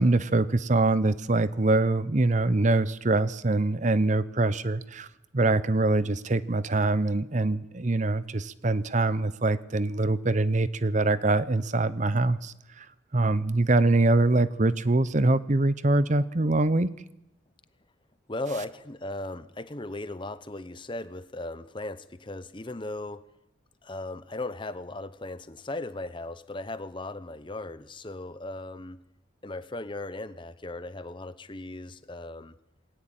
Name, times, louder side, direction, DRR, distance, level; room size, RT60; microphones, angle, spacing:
voice 1, 0.0-5.1 5.3-12.9 13.1-16.9, right 2 dB, 35° right, 15 dB, 0.7 m, -24 dB
voice 2, 18.3-23.2 23.8-29.0 29.4-32.5, left 2 dB, 25° left, 13 dB, 0.9 m, -37 dB
21.0 x 17.5 x 8.9 m, 0.91 s
head